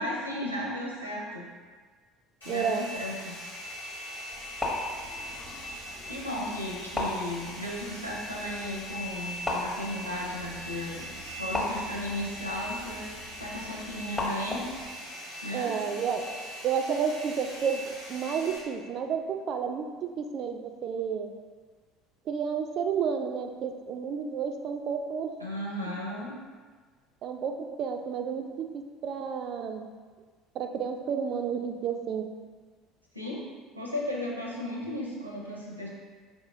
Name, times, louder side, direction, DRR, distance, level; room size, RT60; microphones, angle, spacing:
voice 1, 0.0-1.5 2.4-3.4 6.1-13.1 13.4-14.7 15.4-15.7 25.4-26.4 33.1-33.4 33.8-35.9, left 1 dB, 90° right, -3 dB, 0.6 m, -35 dB
Domestic sounds home sounds, 2.4-18.6, equal, 85° left, 1.2 m, -41 dB
voice 2, 2.5-2.9 15.5-16.3 16.6-21.3 22.3-25.3 27.2-28.7 29.0-29.9 30.6-32.3, right 6 dB, 45° right, 5 dB, 0.3 m, -31 dB
sound 1, 4.3-14.9, left 1 dB, 15° left, 0.8 m, -38 dB
4.6 x 2.8 x 2.6 m, 1.5 s
figure-of-eight pair, 65°, 0 cm